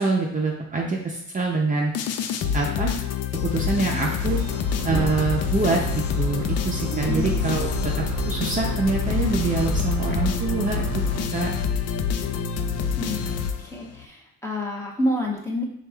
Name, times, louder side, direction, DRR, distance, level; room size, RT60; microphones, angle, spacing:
voice 1, 0.0-1.9 2.5-2.9 3.3-4.4 4.8-10.8 11.3-11.6, right 3 dB, 25° right, -2 dB, 0.6 m, -25 dB
sound 1, 1.9-14.1, left 8 dB, 55° left, 0.4 m, -27 dB
sound 2, 4.2-11.2, right 4 dB, 65° right, 0.6 m, -31 dB
voice 2, 7.0-7.7 13.0-13.3 13.6-15.6, left 1 dB, 10° left, -2 dB, 0.9 m, -29 dB
4.8 x 3.5 x 2.3 m, 0.77 s
cardioid pair, 90°, 30 cm